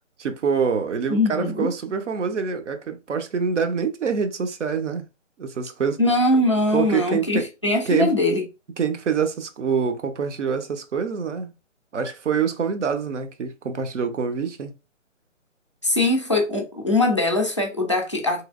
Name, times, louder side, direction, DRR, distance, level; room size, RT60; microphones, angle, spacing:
voice 1, 0.2-5.0 5.4-6.0 6.7-7.5 7.9-8.1 8.8-11.5 11.9-14.7, right 6 dB, 65° right, 0.8 m, -25 dB
voice 2, 1.1-1.7 6.0-8.4 15.8-18.4, left 2 dB, 25° left, 0.4 m, -21 dB
3.1 x 2.9 x 2.4 m
hypercardioid pair, 150°, 38 cm